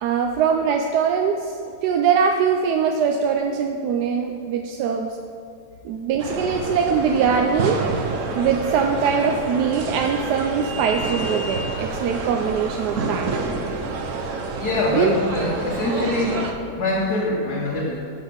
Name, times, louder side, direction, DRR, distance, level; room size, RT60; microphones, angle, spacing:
voice 1, 0.0-1.5 1.8-5.2 5.8-7.8 8.3-13.3 14.9-15.1, right 6 dB, 85° right, 3 dB, 1.2 m, -22 dB
sound 1, 6.2-16.5, right 3 dB, 60° right, 1.1 m, -28 dB
voice 2, 14.5-16.5 16.8-18.0, left 2 dB, 80° left, -6 dB, 1.8 m, -23 dB
12.5 x 4.9 x 5.2 m, 2.7 s
omnidirectional pair, 1.7 m